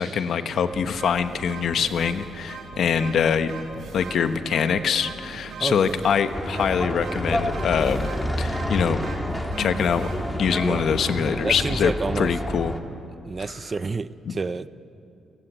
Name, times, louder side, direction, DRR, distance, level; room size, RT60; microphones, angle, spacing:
voice 1, 0.0-3.5 3.9-8.1 8.4-9.0 9.6-10.1 10.4-12.7 14.3-14.4, left 7 dB, 60° left, 9 dB, 1.2 m, -24 dB
sound 1, 0.7-11.3, right 4 dB, 60° right, 3.1 m, -40 dB
voice 2, 5.6-6.0 10.6-10.8 11.4-12.3 13.3-14.7, right 4 dB, 25° right, 15 dB, 0.5 m, -29 dB
sound 2, 6.3-12.8, left 1 dB, 5° left, 1.9 m, -28 dB
30.0 x 16.5 x 9.0 m, 2.7 s
cardioid pair, 140°, 0 cm